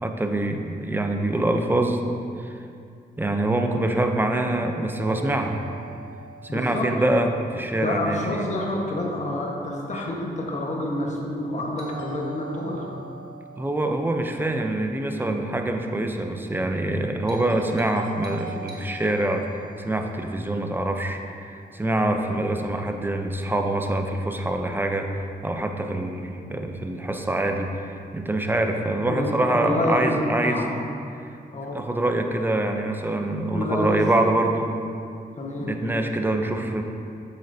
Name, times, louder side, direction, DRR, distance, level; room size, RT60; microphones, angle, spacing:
voice 1, 0.0-2.0 2.4-2.6 3.2-5.6 6.5-8.4 9.9-10.0 13.6-19.5 19.8-30.7 31.7-34.7 35.6-36.8, right 1 dB, 10° right, 4 dB, 0.7 m, -25 dB
Doorbell, 4.9-8.9 11.8-16.0 17.3-21.7, right 3 dB, 80° right, 1.1 m, -44 dB
voice 2, 6.5-7.1 7.7-13.0 29.1-30.6 31.5-31.8 33.5-34.0 35.4-35.7, left 1 dB, 45° left, -2 dB, 1.4 m, -28 dB
7.6 x 7.6 x 2.8 m, 2.4 s
cardioid pair, 70°, 17 cm